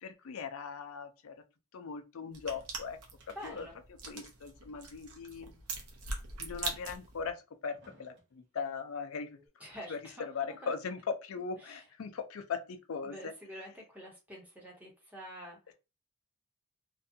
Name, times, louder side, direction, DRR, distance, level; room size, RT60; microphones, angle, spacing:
voice 1, 0.0-1.3 1.7-3.0 3.4-3.7 4.1-5.6 6.4-9.6 9.9-10.0 10.3-13.3, left 5 dB, 70° left, 0.4 m, -39 dB
sound 1, 2.3-7.3, right 3 dB, 85° right, 0.7 m, -42 dB
sound 2, 3.2-4.2 4.4-4.5 5.5-5.6 6.5-6.6 7.3-8.6 9.5-9.6, right 2 dB, 55° right, 0.8 m, -62 dB
voice 2, 3.3-3.7 9.6-10.7 11.6-11.8 13.0-15.7, equal, 5° right, 0.9 m, -47 dB
2.6 x 2.3 x 2.6 m
head